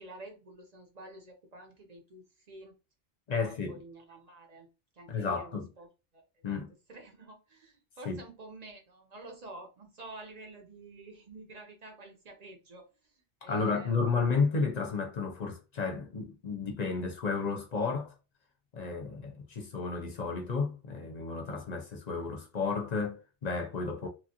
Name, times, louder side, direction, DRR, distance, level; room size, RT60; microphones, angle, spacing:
voice 1, 0.0-2.7 3.3-4.7 4.9-5.9 6.1-6.6 6.9-14.1, right 2 dB, 45° right, 0.7 m, -49 dB
voice 2, 3.3-3.8 5.1-5.7 6.4-6.7 8.1-8.2 13.5-18.1 18.7-24.1, left 4 dB, 45° left, 0.6 m, -32 dB
3.0 x 2.4 x 2.8 m
omnidirectional pair, 1.2 m